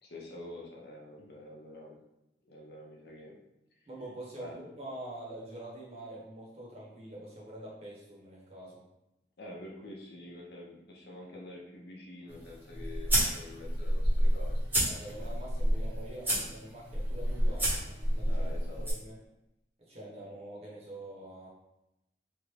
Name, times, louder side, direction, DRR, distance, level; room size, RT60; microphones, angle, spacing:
voice 1, 0.0-2.0 2.4-3.4 3.7-3.8 4.4-4.5 9.4-14.5 18.3-18.9, left 1 dB, 65° left, -1 dB, 0.6 m, -47 dB
voice 2, 3.9-8.8 14.8-18.5 18.8-19.2 19.8-21.5, right 1 dB, 35° right, -5 dB, 0.9 m, -45 dB
sound 1, 12.3-18.9, equal, 10° right, 0.8 m, -30 dB
3.1 x 2.4 x 3.2 m, 0.90 s
head